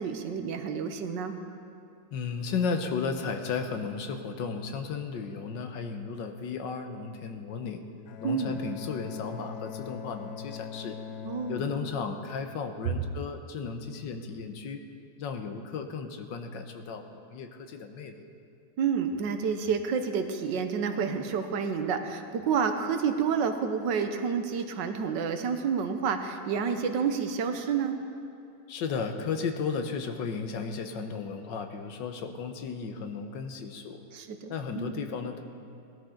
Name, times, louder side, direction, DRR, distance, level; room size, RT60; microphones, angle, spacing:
voice 1, 0.0-1.4 8.2-8.6 11.2-11.6 18.8-28.0 34.1-35.1, right 6 dB, 80° right, 7 dB, 1.6 m, -29 dB
voice 2, 2.1-7.8 8.2-11.0 11.5-14.8 15.2-18.2 28.7-34.0 34.5-35.4, left 5 dB, 85° left, 6 dB, 1.6 m, -34 dB
Bowed string instrument, 8.0-13.1, left 7 dB, 65° left, 0.9 m, -42 dB
19.0 x 13.0 x 3.8 m, 2.6 s
omnidirectional pair, 1.9 m